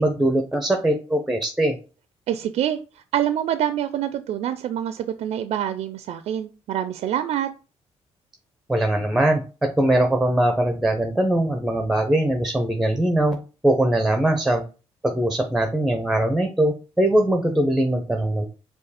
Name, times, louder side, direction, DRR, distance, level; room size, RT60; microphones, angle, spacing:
voice 1, 0.0-1.8 8.7-13.4 13.6-14.6 15.0-18.5, right 1 dB, 5° right, 5 dB, 0.6 m, -21 dB
voice 2, 2.3-2.8 3.1-7.5, right 10 dB, 70° right, 11 dB, 0.4 m, -26 dB
5.1 x 2.3 x 4.1 m, 0.34 s
cardioid pair, 90°, 11 cm